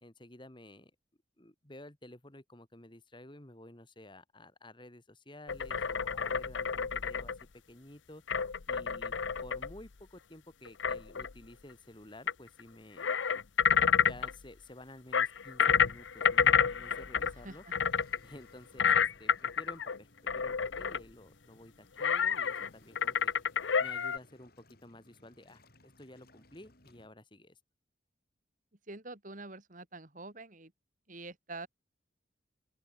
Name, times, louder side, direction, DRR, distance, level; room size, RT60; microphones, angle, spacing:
voice 1, 0.0-0.9 1.4-8.2 8.7-9.2 9.4-13.1 13.8-17.6 18.2-23.3 23.8-27.6, left 1 dB, 25° left, 2.6 m, -52 dB
sound 1, 5.5-7.4 8.3-9.8 10.7-11.3 12.3-12.4 12.6-12.7 13.0-14.3 15.1-17.4 17.7-18.2 18.8-20.0 20.3-21.0 22.0-22.7 22.9-24.2, left 7 dB, 75° left, 0.7 m, -29 dB
Waves surf, 16.8-27.1, left 1 dB, 50° left, 6.3 m, -63 dB
voice 2, 28.9-30.7 31.1-31.7, right 2 dB, 40° right, 2.6 m, -45 dB
open air
head